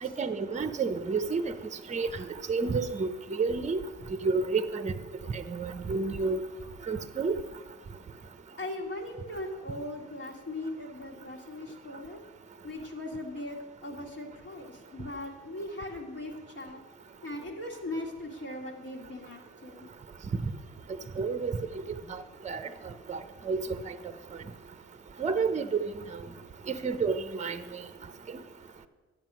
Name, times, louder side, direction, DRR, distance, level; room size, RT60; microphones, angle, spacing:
voice 1, 0.0-1.5 1.9-2.1 2.5-3.8 4.2-4.9 5.3-6.4 6.9-7.4 21.2-21.6 22.1-22.7 23.1-23.9 25.2-25.7 26.7-27.8, right 4 dB, 25° right, 10 dB, 0.7 m, -30 dB
voice 2, 8.6-12.2 12.6-16.8 17.2-19.9 22.0-22.1, left 1 dB, 50° left, -3 dB, 2.0 m, -39 dB
10.5 x 7.5 x 6.1 m, 1.3 s
cardioid pair, 90°, 30 cm